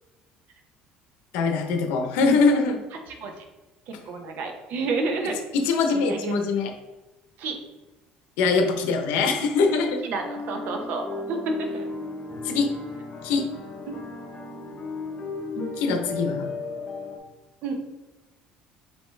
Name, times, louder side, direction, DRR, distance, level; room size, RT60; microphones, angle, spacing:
voice 1, 1.3-2.8 5.5-6.7 8.4-10.0 12.4-12.7 13.2-13.5 15.8-16.5, left 4 dB, 80° left, 5 dB, 0.7 m, -22 dB
voice 2, 3.9-5.4 5.9-6.3 7.4-7.5 10.0-11.8 15.6-15.7 17.6-17.8, right 3 dB, 60° right, 4 dB, 0.8 m, -30 dB
sound 1, 10.1-17.2, left 3 dB, 35° left, 0.9 m, -35 dB
5.2 x 2.8 x 3.3 m, 1.1 s
cardioid pair, 120°, 3 cm